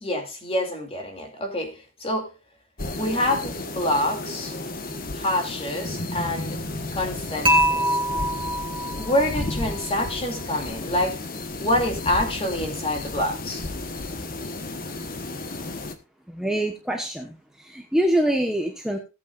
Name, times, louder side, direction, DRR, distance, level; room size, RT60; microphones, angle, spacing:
voice 1, 0.0-2.3 3.0-4.6 5.1-6.6 6.9-7.9 8.9-11.2 11.6-13.7, left 1 dB, 25° left, 2.6 m, -26 dB
sound 1, 2.8-16.0, left 2 dB, 40° left, 1.2 m, -33 dB
Dishes pots and pans / Chink clink, 7.5-9.6, right 1 dB, 25° right, 2.0 m, -24 dB
voice 2, 16.3-19.0, right 1 dB, 5° right, 1.1 m, -25 dB
17.5 x 8.5 x 2.5 m
head